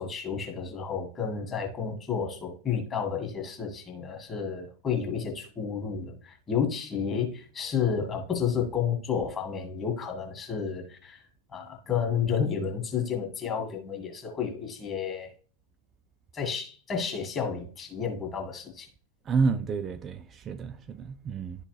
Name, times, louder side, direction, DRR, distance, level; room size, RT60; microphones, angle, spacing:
voice 1, 0.0-11.2 11.5-15.3 16.3-18.9, left 7 dB, 25° left, 1.7 m, -31 dB
voice 2, 19.2-21.7, right 5 dB, 25° right, 0.4 m, -29 dB
11.5 x 3.8 x 3.2 m
figure-of-eight pair, 90°, 0 cm